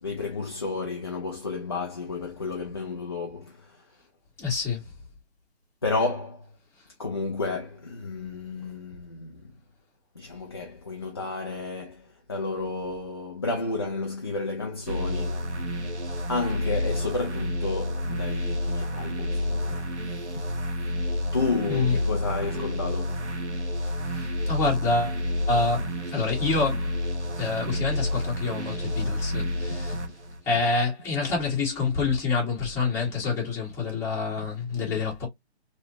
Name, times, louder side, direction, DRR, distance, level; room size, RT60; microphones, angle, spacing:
voice 1, 0.0-3.8 5.8-6.5 7.0-9.5 10.2-15.6 16.3-19.9 20.3-20.5 20.8-23.2 29.4-29.5, left 3 dB, 25° left, 0.3 m, -32 dB
voice 2, 4.4-4.8 21.7-21.9 24.1-25.2 25.5-26.9 27.4-30.0 30.4-35.3, left 4 dB, 10° left, 1.6 m, -27 dB
sound 1, 14.9-30.4, left 1 dB, 90° right, 1.2 m, -29 dB
3.2 x 3.0 x 2.7 m
hypercardioid pair, 150°, 34 cm